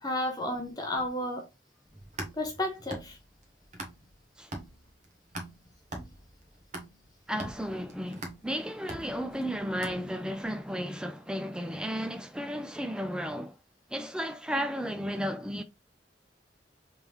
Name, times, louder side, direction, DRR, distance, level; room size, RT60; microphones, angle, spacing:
voice 1, 0.0-1.5 2.3-3.2, left 1 dB, 20° left, 0.8 m, -32 dB
sound 1, 1.9-4.2 4.5-10.4, right 2 dB, 40° right, 1.0 m, -42 dB
voice 2, 7.3-13.6 13.9-15.6, equal, 5° right, 0.4 m, -34 dB
3.5 x 3.3 x 3.0 m
head